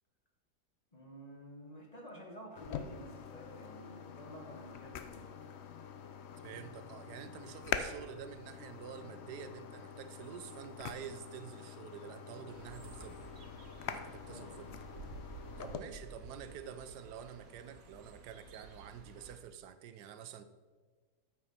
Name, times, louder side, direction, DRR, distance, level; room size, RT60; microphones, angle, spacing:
voice 1, 0.9-5.3 14.2-14.8 15.6-15.9, equal, 30° left, 0 dB, 1.1 m, -51 dB
sound 1, 2.6-15.8, left 7 dB, 70° left, 0.6 m, -45 dB
voice 2, 6.4-13.2 13.9-14.7 15.6-20.4, right 8 dB, 85° right, 11 dB, 1.2 m, -48 dB
sound 2, 12.5-19.4, right 2 dB, 60° right, 1.4 m, -52 dB
8.6 x 6.1 x 5.4 m, 1.5 s
omnidirectional pair, 1.7 m